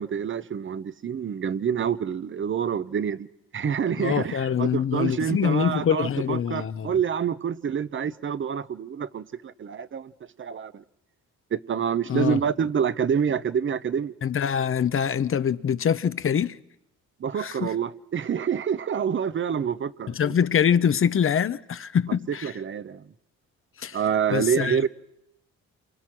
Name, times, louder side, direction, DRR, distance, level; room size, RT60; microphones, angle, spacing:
voice 1, 0.0-3.3 3.5-10.1 10.4-10.8 11.5-14.1 17.2-20.1 22.1-22.2 22.4-23.1 23.9-24.9, right 7 dB, 40° right, 0.9 m, -27 dB
voice 2, 4.0-7.0 12.1-12.4 14.2-16.6 17.4-17.7 20.1-22.5 23.8-24.0 24.3-24.8, left 8 dB, 45° left, 1.0 m, -24 dB
28.0 x 25.0 x 6.2 m
cardioid pair, 90°, 30 cm